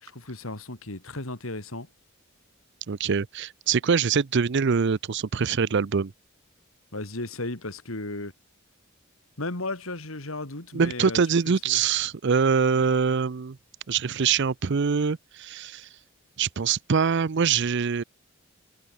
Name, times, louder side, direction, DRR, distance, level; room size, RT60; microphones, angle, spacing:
voice 1, 0.0-1.9 6.9-8.3 9.4-11.2 11.4-11.8 12.7-12.9, left 2 dB, 80° left, 3.3 m, -35 dB
voice 2, 2.9-6.1 10.7-13.6 13.9-15.9 16.4-18.0, right 6 dB, 60° right, 0.5 m, -24 dB
head